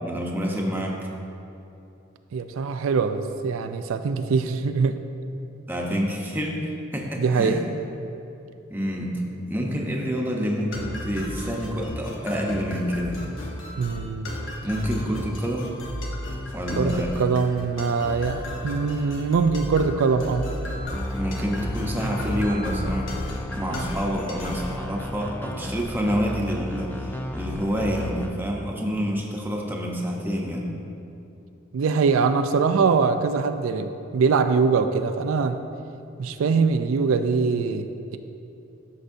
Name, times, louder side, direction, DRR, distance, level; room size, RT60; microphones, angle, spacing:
voice 1, 0.0-1.1 5.7-7.7 8.7-9.2 9.5-13.2 14.6-15.7 16.5-17.2 21.1-30.7, equal, 10° right, -1 dB, 0.8 m, -28 dB
voice 2, 2.3-5.0 7.2-7.6 13.8-14.3 16.8-20.5 31.7-35.6 36.2-38.2, right 5 dB, 85° right, 8 dB, 0.4 m, -23 dB
sound 1, 10.7-24.8, left 1 dB, 65° left, 1.1 m, -34 dB
sound 2, 20.8-28.3, left 1 dB, 10° left, 0.4 m, -33 dB
12.5 x 6.4 x 2.6 m, 2.8 s
head